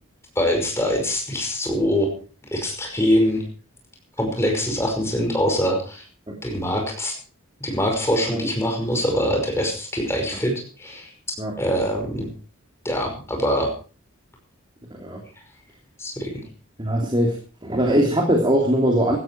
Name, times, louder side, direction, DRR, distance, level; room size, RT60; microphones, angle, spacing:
voice 1, 0.4-2.1 2.5-3.4 4.2-6.0 6.4-7.1 7.6-11.1 11.6-12.3 12.8-13.7 16.0-16.4, equal, 10° left, 2 dB, 5.4 m, -23 dB
voice 2, 16.8-17.3 17.6-19.2, equal, 20° right, 1 dB, 2.9 m, -21 dB
16.5 x 13.5 x 4.6 m, 0.38 s
head